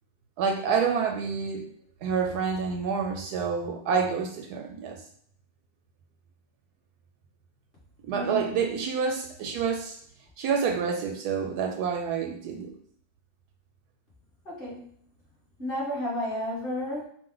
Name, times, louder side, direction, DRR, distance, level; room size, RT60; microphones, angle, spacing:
voice 1, 0.4-1.7 2.0-5.0 8.0-10.0 10.4-12.7, right 6 dB, 75° right, 3 dB, 1.0 m, -28 dB
voice 2, 8.1-8.5 14.5-14.9 15.6-17.1, left 1 dB, 35° left, -7 dB, 2.0 m, -32 dB
4.9 x 2.4 x 3.8 m, 0.62 s
omnidirectional pair, 1.8 m